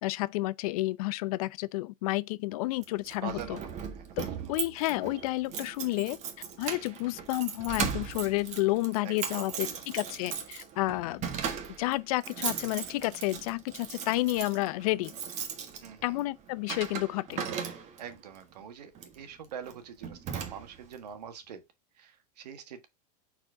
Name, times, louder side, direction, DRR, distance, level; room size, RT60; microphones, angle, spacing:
voice 1, 0.0-3.6 4.2-4.3 4.5-6.2 6.6-11.4 11.8-15.1 16.0-17.4, left 19 dB, 65° left, 0.5 m, -30 dB
Keys jangling, 2.8-18.2 18.9-19.2 19.7-19.8 20.0-20.9, right 7 dB, 35° right, 1.4 m, -38 dB
voice 2, 3.2-4.6 9.0-10.2 15.8-16.2 18.0-21.6 21.9-22.9, right 8 dB, 90° right, 1.5 m, -45 dB
4.4 x 4.4 x 4.8 m
supercardioid pair, 130°, 20 cm